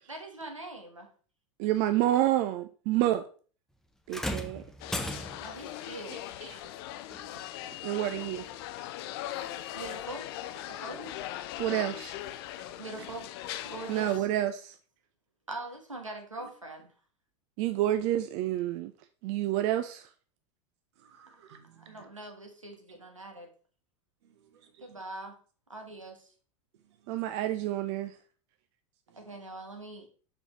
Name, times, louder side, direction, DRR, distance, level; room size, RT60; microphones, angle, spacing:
voice 1, 0.1-1.1 5.4-6.3 9.7-10.3 10.7-11.1 12.8-13.3 13.6-14.3 15.5-16.9 21.6-23.5 24.8-25.4 25.7-26.3 29.1-30.1, right 2 dB, 90° right, 1.3 m, -42 dB
voice 2, 1.6-3.2 4.1-4.6 6.4-6.6 7.8-8.4 11.6-12.1 13.9-14.8 17.6-18.9 19.2-20.1 27.1-28.2, right 13 dB, 45° right, 0.5 m, -28 dB
sound 1, 4.1-5.6 7.1-7.3 8.1-8.2, equal, 5° left, 0.7 m, -36 dB
sound 2, 4.8-14.2, left 13 dB, 50° left, 0.5 m, -40 dB
voice 3, 7.3-7.8 9.6-9.7 12.6-12.7 16.4-16.5 21.0-22.0 24.5-24.9 26.8-27.1 29.1-29.2, right 8 dB, 60° right, 1.2 m, -57 dB
6.9 x 5.5 x 3.1 m
figure-of-eight pair, 85°, 16 cm